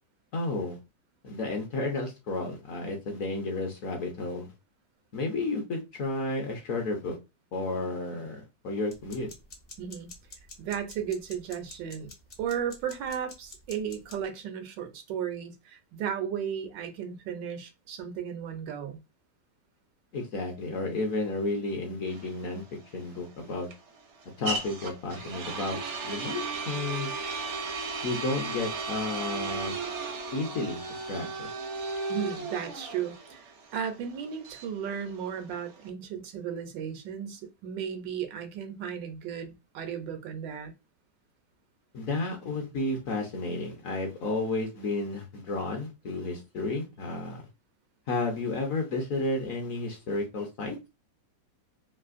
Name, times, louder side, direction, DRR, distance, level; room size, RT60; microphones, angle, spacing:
voice 1, 0.3-0.8 1.2-4.5 5.1-7.2 7.5-9.3 20.1-23.7 24.4-27.1 28.0-29.8 30.3-31.5 41.9-47.4 48.1-50.8, left 2 dB, 65° left, 0.9 m, -32 dB
sound 1, 8.9-14.2, left 3 dB, 40° left, 0.6 m, -48 dB
voice 2, 9.8-10.1 10.6-12.1 12.4-19.0 32.1-33.4 33.7-40.7, right 8 dB, 90° right, 1.4 m, -35 dB
sound 2, 22.1-35.9, right 3 dB, 65° right, 0.7 m, -35 dB
3.3 x 2.5 x 2.4 m
omnidirectional pair, 1.9 m